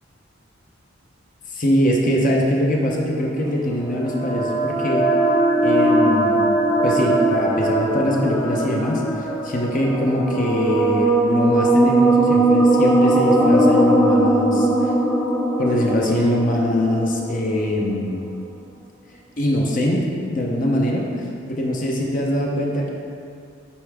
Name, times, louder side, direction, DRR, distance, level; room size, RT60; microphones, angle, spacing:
voice 1, 1.5-5.1 5.6-6.4 6.8-14.9 15.6-18.2 19.4-22.9, equal, 40° left, -1 dB, 0.7 m, -22 dB
sound 1, 3.4-17.5, right 1 dB, 15° left, 1.0 m, -19 dB
8.5 x 4.7 x 3.5 m, 2.4 s
head